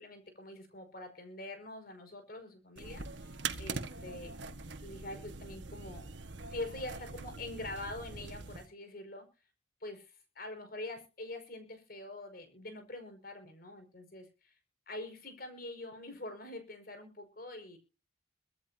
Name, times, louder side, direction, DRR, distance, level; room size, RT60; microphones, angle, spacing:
voice 1, 0.0-4.4 4.8-6.1 6.5-9.3 9.8-14.6 14.9-17.8, left 2 dB, 50° left, 6 dB, 5.3 m, -45 dB
sound 1, 2.8-8.7, right 4 dB, 80° right, 1.5 m, -43 dB
24.0 x 10.5 x 2.8 m, 0.33 s
head